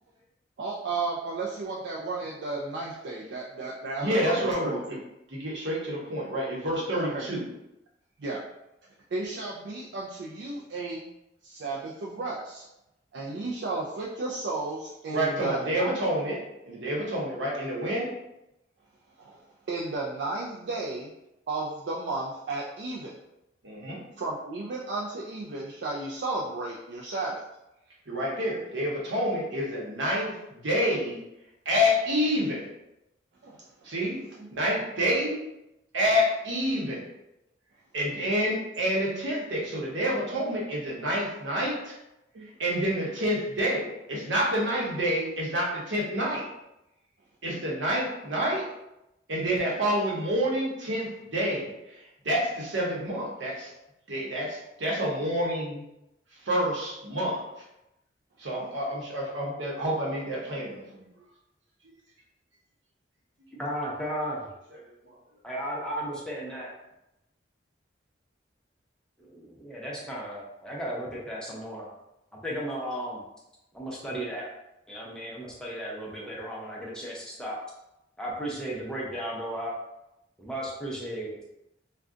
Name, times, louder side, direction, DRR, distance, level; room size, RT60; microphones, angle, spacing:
voice 1, 0.6-5.0 7.0-7.3 8.2-8.4 9.1-11.1 11.4-12.6 13.1-16.0 19.2-21.1 21.5-23.1 24.2-27.4 33.4-33.6 42.3-42.5, right 3 dB, 65° right, -4 dB, 0.4 m, -33 dB
voice 2, 4.0-5.0 5.3-7.4 15.1-18.1 23.6-24.0 28.1-31.2 31.6-32.7 33.8-34.2 34.5-35.4 35.9-37.0 37.9-41.9 42.4-46.5 47.4-48.7 49.3-53.7 54.1-55.8 56.3-57.4 58.4-61.1 64.8-65.2, equal, 85° right, -3 dB, 0.9 m, -28 dB
voice 3, 63.5-64.5 65.4-66.7 69.2-71.9 72.3-73.2 73.7-74.5 74.9-77.6 78.2-79.7 80.4-81.4, equal, 5° left, -5 dB, 0.5 m, -35 dB
2.4 x 2.2 x 3.7 m, 0.87 s
head